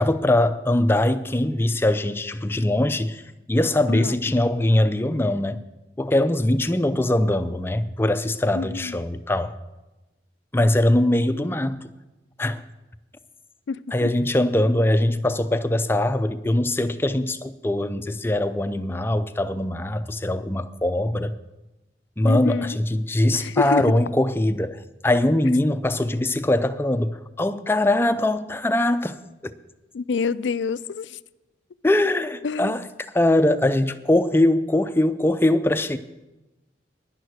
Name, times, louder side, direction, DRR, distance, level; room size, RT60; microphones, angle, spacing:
voice 1, 0.0-3.2 3.5-5.6 6.0-9.5 10.5-11.9 12.4-12.6 13.9-21.4 22.2-29.5 31.8-32.8 33.1-36.0, left 1 dB, 15° left, 0.4 m, -22 dB
voice 2, 8.5-9.0 13.7-14.1 22.3-22.8 23.4-23.8 29.9-31.2 32.4-32.7, left 5 dB, 90° left, 0.4 m, -27 dB
11.0 x 10.5 x 6.5 m
head